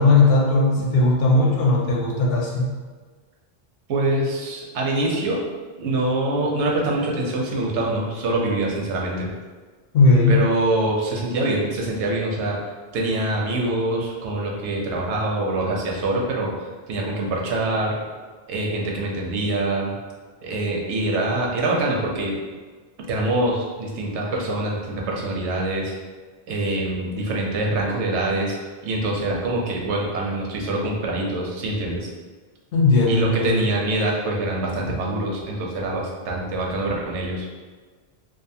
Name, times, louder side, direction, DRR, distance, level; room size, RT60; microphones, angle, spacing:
voice 1, 0.0-2.7 9.9-10.4 32.7-33.6, left 2 dB, 65° left, -2 dB, 0.7 m, -17 dB
voice 2, 3.9-5.4 5.8-9.3 10.3-12.6 12.9-16.5 16.9-18.0 18.5-20.0 20.4-22.3 23.1-25.9 26.5-28.5 28.8-32.1 33.1-37.5, right 2 dB, 90° right, -2 dB, 0.9 m, -24 dB
2.5 x 2.4 x 2.6 m, 1.4 s
omnidirectional pair, 1.1 m